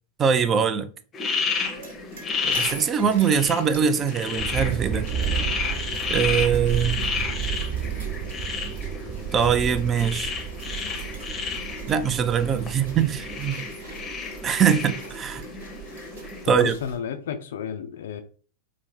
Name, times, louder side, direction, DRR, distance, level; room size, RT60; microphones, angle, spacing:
voice 1, 0.2-0.9 2.4-5.1 6.1-7.0 9.3-10.3 11.9-13.6 14.4-15.4 16.4-16.7, right 7 dB, 25° right, 0.3 m, -22 dB
sound 1, 1.1-16.4, left 5 dB, 25° left, 0.6 m, -32 dB
sound 2, 1.5-17.0, right 5 dB, 65° right, 1.1 m, -43 dB
sound 3, 4.3-13.3, right 9 dB, 40° right, 1.0 m, -31 dB
voice 2, 16.5-18.2, left 8 dB, 60° left, 0.3 m, -32 dB
3.9 x 2.0 x 3.1 m
figure-of-eight pair, 90°, 0 cm